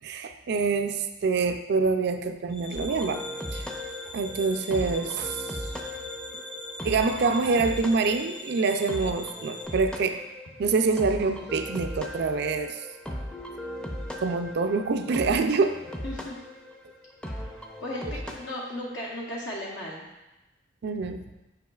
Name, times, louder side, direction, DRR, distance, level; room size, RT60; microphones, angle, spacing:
voice 1, 0.0-3.2 3.5-3.7 4.1-5.6 6.3-6.4 6.8-10.2 10.6-12.8 14.2-15.8 20.8-21.2, right 4 dB, 60° right, 8 dB, 0.4 m, -26 dB
sound 1, 2.5-9.7, left 1 dB, 40° left, 1.1 m, -42 dB
sound 2, 2.7-18.8, left 1 dB, 5° left, 0.5 m, -38 dB
voice 2, 16.0-16.3 17.8-20.0, left 1 dB, 70° left, -4 dB, 1.0 m, -35 dB
9.3 x 4.9 x 2.3 m, 1.0 s
head